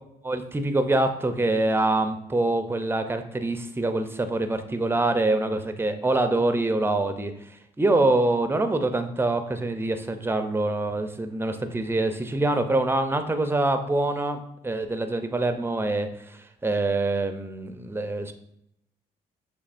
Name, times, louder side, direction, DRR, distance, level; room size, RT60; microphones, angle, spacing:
voice 1, 0.2-7.3 7.8-18.3, right 2 dB, 10° right, 8 dB, 0.6 m, -25 dB
6.5 x 2.8 x 2.6 m, 0.75 s
hypercardioid pair, 55°, 19 cm